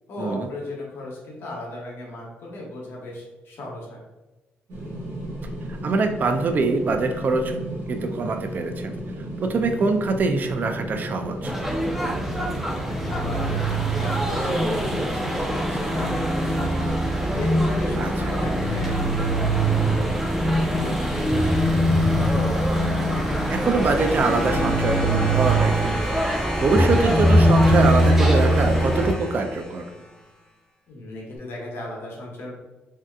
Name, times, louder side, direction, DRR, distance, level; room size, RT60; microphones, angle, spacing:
voice 1, 0.1-4.0 12.4-16.9 17.4-21.7 30.9-32.6, left 2 dB, 65° left, -2 dB, 1.0 m, -36 dB
sound 1, 4.7-24.6, right 1 dB, 65° right, 1.2 m, -34 dB
voice 2, 5.8-7.6 7.9-8.9 9.4-11.5 18.0-18.4 23.5-29.9, right 3 dB, 45° right, 6 dB, 0.4 m, -24 dB
sound 2, 11.4-29.1, right 1 dB, 5° right, 0.6 m, -22 dB
sound 3, 22.6-30.3 31.4-31.5, left 1 dB, 25° left, 1.2 m, -35 dB
3.4 x 2.7 x 2.3 m, 1.1 s
cardioid pair, 80°, 4 cm